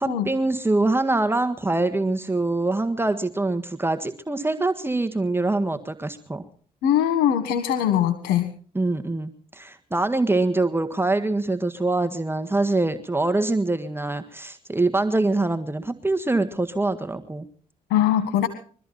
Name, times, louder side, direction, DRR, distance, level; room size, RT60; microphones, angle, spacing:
voice 1, 0.0-6.4 8.7-17.4, right 2 dB, 15° right, 9 dB, 1.7 m, -24 dB
voice 2, 6.8-8.5 17.9-18.5, left 10 dB, 80° left, 10 dB, 1.7 m, -21 dB
23.5 x 13.5 x 4.2 m, 0.43 s
supercardioid pair, 55°, 16 cm